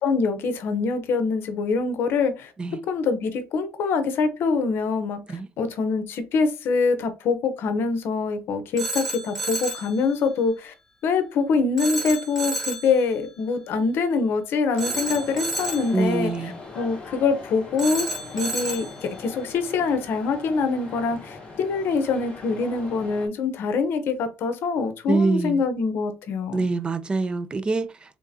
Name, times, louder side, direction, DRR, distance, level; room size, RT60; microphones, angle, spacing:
voice 1, 0.0-2.5 2.8-10.7 11.0-16.3 16.7-18.1 18.3-26.6, left 4 dB, 65° left, 0.8 m, -24 dB
Telephone, 8.8-9.9 11.8-12.9 14.8-15.9 17.8-18.9, right 1 dB, 5° left, 1.1 m, -30 dB
sound 1, 14.7-23.3, left 3 dB, 25° left, 1.7 m, -40 dB
voice 2, 15.9-16.6 25.1-25.6 26.5-28.2, right 3 dB, 20° right, 0.5 m, -25 dB
3.7 x 3.5 x 2.7 m
cardioid pair, 130°, 4 cm